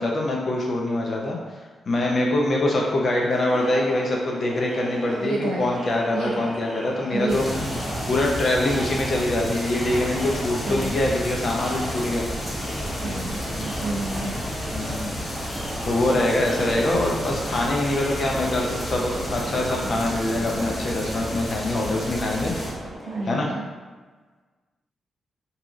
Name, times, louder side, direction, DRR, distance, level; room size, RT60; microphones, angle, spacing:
voice 1, 0.0-1.4 1.9-7.4 8.1-12.3 14.7-15.2 15.8-22.5 23.2-23.5, left 1 dB, 55° left, -1 dB, 0.8 m, -24 dB
Crowd, 3.3-23.2, equal, 10° left, 0.9 m, -38 dB
voice 2, 5.2-5.7 6.1-6.5 7.1-7.6 10.7-11.0 13.0-14.3 23.1-23.7, right 2 dB, 80° right, -2 dB, 0.6 m, -30 dB
sound 1, 7.3-22.7, equal, 35° left, 1.2 m, -32 dB
sound 2, 10.1-23.0, right 1 dB, 40° right, 0.6 m, -38 dB
2.8 x 2.5 x 3.7 m, 1.4 s
supercardioid pair, 50°, 0 cm